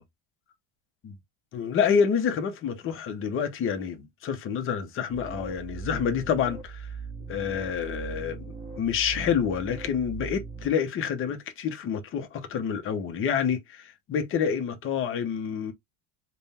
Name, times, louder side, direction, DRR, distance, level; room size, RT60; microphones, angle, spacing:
voice 1, 1.5-6.9 7.3-8.4 8.8-15.7, left 7 dB, 25° left, 0.6 m, -28 dB
sound 1, 5.1-10.7, right 5 dB, 15° right, 1.1 m, -39 dB
3.6 x 2.2 x 4.1 m
cardioid pair, 165°, 48 cm